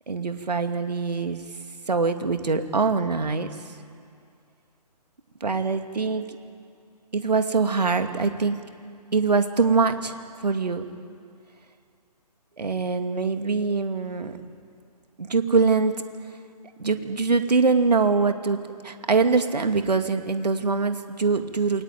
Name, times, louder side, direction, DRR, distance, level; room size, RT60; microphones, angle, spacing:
voice 1, 0.1-1.4 1.9-3.5 5.4-6.2 7.1-8.6 9.1-10.1 10.4-10.8 12.6-14.4 15.2-15.9 16.8-18.6 18.8-21.8, right 4 dB, 75° right, 7 dB, 2.4 m, -23 dB
27.5 x 23.0 x 9.4 m, 2.3 s
figure-of-eight pair, 135°, 21 cm